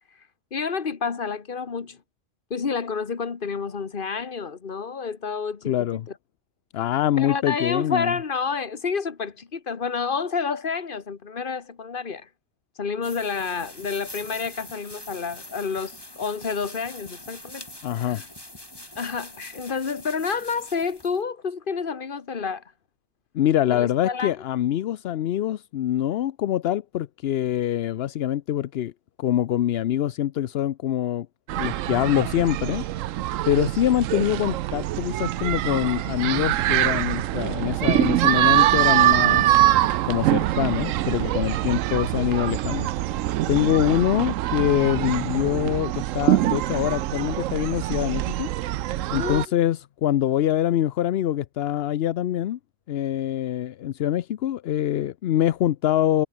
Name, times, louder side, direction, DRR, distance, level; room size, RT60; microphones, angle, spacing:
voice 1, 0.5-2.0 2.5-5.9 7.2-12.3 12.8-18.2 19.0-22.6 23.7-24.3 49.1-49.4, left 5 dB, 40° left, 1.5 m, -29 dB
voice 2, 5.7-6.1 6.7-8.1 17.8-18.2 23.3-28.9 29.2-31.3 31.6-32.9 33.5-39.7 40.1-48.5 49.1-52.6 52.9-56.3, left 12 dB, 60° left, 0.7 m, -24 dB
sound 1, 13.0-21.2, left 1 dB, 20° left, 2.9 m, -43 dB
sound 2, 31.5-49.5, right 14 dB, 75° right, 1.0 m, -24 dB
omnidirectional pair, 1.4 m